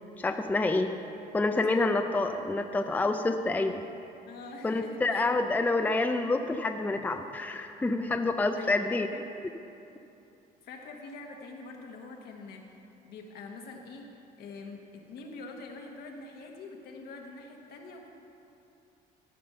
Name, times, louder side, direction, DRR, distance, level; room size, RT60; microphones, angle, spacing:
voice 1, 0.2-0.9 1.3-3.8 4.6-9.1, left 2 dB, 10° left, 6 dB, 0.4 m, -28 dB
voice 2, 1.5-1.9 4.3-5.2 8.6-9.2 10.6-12.6 13.0-18.1, left 3 dB, 70° left, 1 dB, 1.5 m, -45 dB
13.5 x 5.3 x 6.7 m, 2.7 s
cardioid pair, 110°, 17 cm